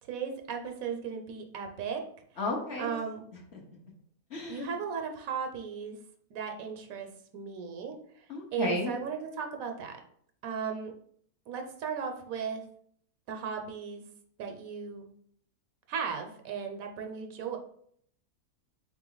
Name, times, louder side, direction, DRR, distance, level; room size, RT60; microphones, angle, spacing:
voice 1, 0.0-2.1 2.3-2.4 2.8-3.2 4.5-6.0 6.3-10.0 10.4-10.9 11.5-12.6 13.3-14.1 14.4-15.1 15.9-17.6, right 6 dB, 70° right, 4 dB, 1.0 m, -36 dB
voice 2, 2.4-2.9 4.3-4.7 8.3-8.9, left 2 dB, 55° left, 0 dB, 1.0 m, -33 dB
3.6 x 3.1 x 3.8 m, 0.64 s
omnidirectional pair, 1.6 m